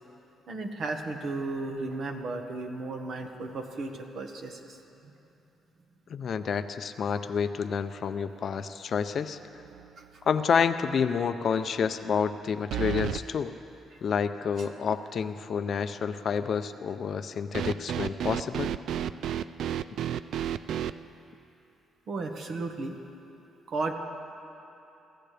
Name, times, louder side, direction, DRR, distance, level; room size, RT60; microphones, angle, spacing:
voice 1, 0.5-4.8 10.0-10.1 22.1-22.9 23.7-23.9, right 3 dB, 55° right, 4 dB, 1.4 m, -34 dB
voice 2, 6.1-9.4 10.3-13.5 14.0-18.7, left 6 dB, 50° left, 10 dB, 0.5 m, -29 dB
sound 1, 9.6-10.1 10.4-10.5 12.7-13.2 17.5-21.0, right 10 dB, 70° right, 0.3 m, -31 dB
24.0 x 15.5 x 3.4 m, 2.9 s
cardioid pair, 120°, 0 cm